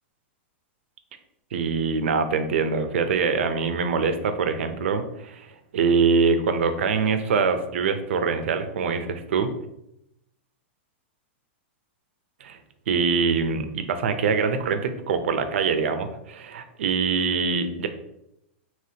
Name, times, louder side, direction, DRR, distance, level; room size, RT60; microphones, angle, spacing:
voice 1, 1.5-9.5 12.4-12.6 12.9-17.9, right 5 dB, 75° right, 9 dB, 0.6 m, -24 dB
5.0 x 3.0 x 2.8 m, 0.83 s
supercardioid pair, 160°, 7 cm